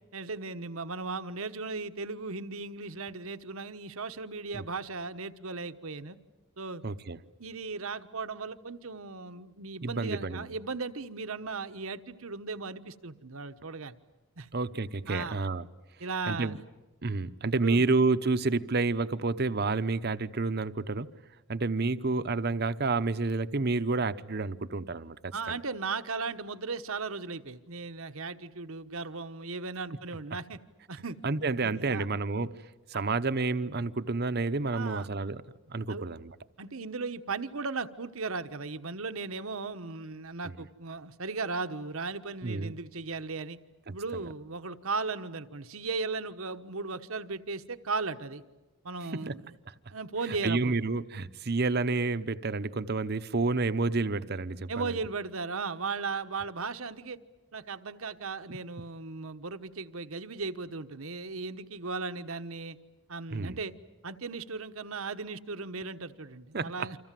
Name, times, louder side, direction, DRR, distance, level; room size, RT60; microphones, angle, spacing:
voice 1, 0.1-6.2 6.6-6.8 7.4-13.9 14.4-14.5 15.1-15.5 16.0-16.6 17.6-17.9 25.3-30.6 30.9-31.2 31.6-32.0 32.9-33.0 34.7-35.1 35.9-36.0 36.6-43.6 43.9-48.4 48.8-49.5 49.9-50.8 54.7-57.2 57.5-62.8 63.1-63.7 64.0-67.0, right 4 dB, 75° right, 1.2 m, -36 dB
voice 2, 6.8-7.2 9.8-10.5 14.5-15.7 16.3-16.6 17.0-21.1 21.5-25.6 31.2-32.5 32.9-35.4 35.7-36.3 42.4-42.7 43.9-44.3 49.1-49.3 50.3-54.9 63.3-63.6 66.5-66.9, right 3 dB, 50° right, 0.9 m, -29 dB
29.0 x 26.0 x 7.6 m
head